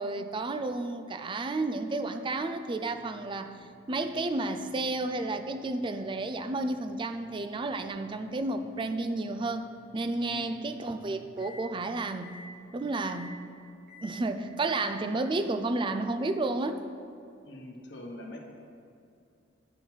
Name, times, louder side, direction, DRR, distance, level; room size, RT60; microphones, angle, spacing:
voice 1, 0.0-3.6 3.9-9.7 9.9-12.4 12.7-13.5 14.0-16.9, right 2 dB, 25° right, 9 dB, 0.4 m, -31 dB
sound 1, 2.9-11.7 12.2-12.5 13.0-13.4 13.9-14.2 14.7-15.0, left 1 dB, 65° right, 1.9 m, -54 dB
voice 2, 10.3-10.7 17.4-18.4, left 1 dB, 65° left, 0 dB, 1.1 m, -42 dB
9.9 x 4.5 x 5.6 m, 2.5 s
head